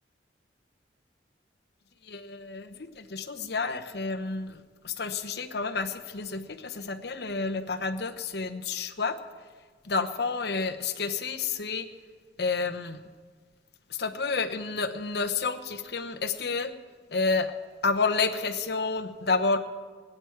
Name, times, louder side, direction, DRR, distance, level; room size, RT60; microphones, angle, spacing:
voice 1, 2.0-9.2 9.8-11.9 12.4-13.0 13.9-16.7 17.1-17.5 17.8-19.6, left 4 dB, 60° left, 9 dB, 0.9 m, -30 dB
24.5 x 8.8 x 4.6 m, 1.5 s
head